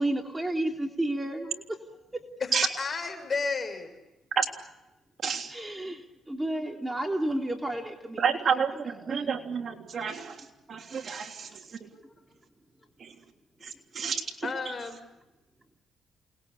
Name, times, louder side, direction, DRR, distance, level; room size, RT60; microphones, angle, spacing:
voice 1, 0.0-1.6 5.5-6.0 6.3-8.2 9.1-9.2, right 1 dB, 10° right, 3 dB, 3.3 m, -31 dB
voice 2, 2.4-3.9 14.4-15.0, left 4 dB, 35° left, 7 dB, 6.4 m, -32 dB
voice 3, 5.2-5.5 8.2-10.4 10.7-11.5 11.8-11.9 13.0-13.1 13.6-14.5, right 6 dB, 50° right, 4 dB, 3.2 m, -29 dB
29.0 x 20.5 x 8.5 m, 0.99 s
cardioid pair, 90°, 0 cm